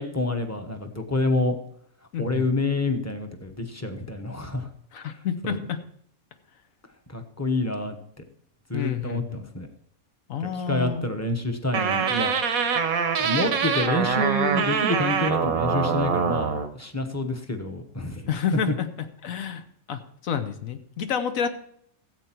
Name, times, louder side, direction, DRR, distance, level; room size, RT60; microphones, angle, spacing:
voice 1, 0.0-1.6 2.2-4.7 5.4-5.6 7.1-8.0 8.7-9.7 10.7-12.3 13.2-18.3, left 2 dB, 15° left, 5 dB, 1.0 m, -27 dB
voice 2, 2.1-2.5 4.9-5.8 8.7-9.4 10.3-11.1 18.3-19.6 19.9-21.5, left 8 dB, 75° left, 9 dB, 1.3 m, -29 dB
sound 1, 11.7-16.7, right 6 dB, 80° right, 1.4 m, -24 dB
13.5 x 8.2 x 4.5 m, 0.69 s
omnidirectional pair, 1.5 m